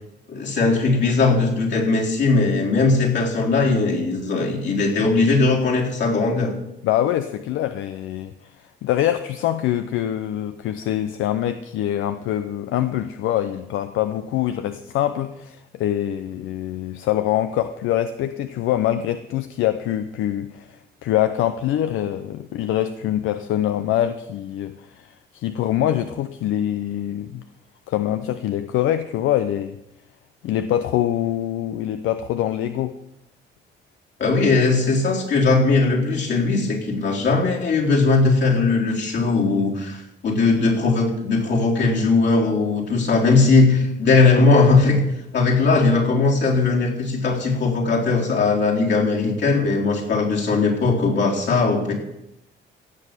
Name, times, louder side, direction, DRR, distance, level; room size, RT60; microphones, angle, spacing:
voice 1, 0.3-6.5 34.2-45.0 45.3-51.9, left 3 dB, 65° left, -2 dB, 4.1 m, -19 dB
voice 2, 6.8-8.5 8.8-27.4 27.9-29.8 30.4-32.9, left 12 dB, 85° left, 10 dB, 0.7 m, -24 dB
16.0 x 7.6 x 6.8 m, 0.87 s
cardioid pair, 90°, 20 cm